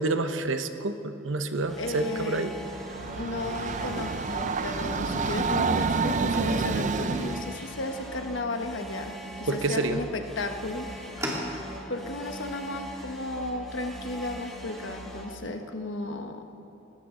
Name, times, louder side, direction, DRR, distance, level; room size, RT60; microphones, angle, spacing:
voice 1, 0.0-2.5 9.5-10.0, right 2 dB, 85° right, 8 dB, 0.9 m, -28 dB
sound 1, 1.6-15.3, right 1 dB, ahead, 1.8 m, -41 dB
voice 2, 1.8-2.5 3.2-10.9 11.2-11.3 11.9-16.4, left 2 dB, 75° left, 5 dB, 1.2 m, -34 dB
Train, 2.6-7.6, right 4 dB, 40° right, 0.5 m, -28 dB
sound 2, 4.7-12.0, equal, 15° right, 2.6 m, -43 dB
20.0 x 16.5 x 3.8 m, 3.0 s
head